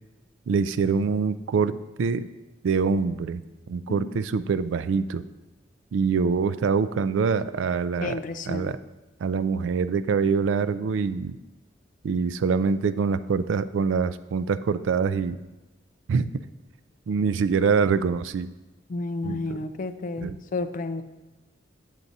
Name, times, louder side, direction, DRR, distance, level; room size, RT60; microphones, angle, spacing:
voice 1, 0.5-1.7 2.0-2.3 2.6-3.4 3.7-5.2 5.9-8.2 8.5-8.8 9.2-11.3 12.0-15.4 16.1-16.3 17.1-18.5 19.2-19.6 20.2-20.4, right 5 dB, 90° right, 14 dB, 0.3 m, -24 dB
voice 2, 8.0-8.7 18.9-21.0, left 3 dB, 45° left, 10 dB, 0.4 m, -31 dB
9.4 x 7.3 x 2.7 m, 1.1 s
head